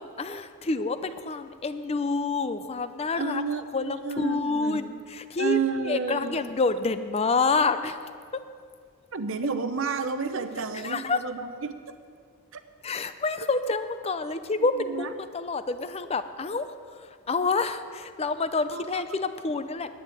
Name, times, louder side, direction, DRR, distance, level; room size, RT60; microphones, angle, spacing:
voice 1, 0.0-3.4 3.7-8.0 10.8-11.2 12.8-19.9, left 3 dB, 30° left, 11 dB, 0.5 m, -28 dB
voice 2, 3.2-4.8 5.4-6.4 9.1-11.7 12.5-12.6 14.9-15.1 18.7-18.8, right 5 dB, 60° right, 10 dB, 0.8 m, -30 dB
10.5 x 9.4 x 9.1 m, 2.1 s
head